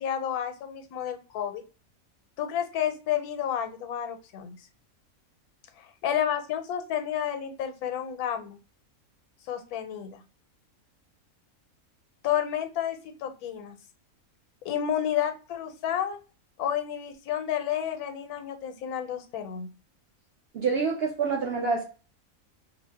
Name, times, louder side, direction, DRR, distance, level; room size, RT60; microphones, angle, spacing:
voice 1, 0.0-1.6 2.4-4.5 5.8-8.6 9.5-10.2 12.2-13.8 14.6-16.2 16.6-19.7, left 9 dB, 90° left, 1.1 m, -30 dB
voice 2, 20.5-21.8, right 5 dB, 70° right, 0.6 m, -27 dB
2.6 x 2.0 x 3.2 m
omnidirectional pair, 1.5 m